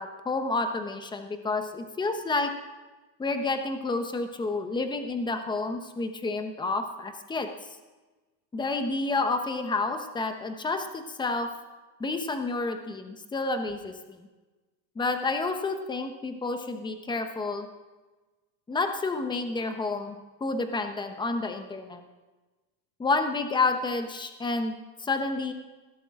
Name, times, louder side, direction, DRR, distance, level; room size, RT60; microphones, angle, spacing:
voice 1, 0.0-2.5 3.2-7.5 8.5-11.5 12.0-14.3 15.0-17.7 18.7-22.0 23.0-25.5, left 3 dB, 10° left, 7 dB, 0.9 m, -30 dB
16.0 x 13.0 x 3.7 m, 1.2 s
supercardioid pair, 150°, 47 cm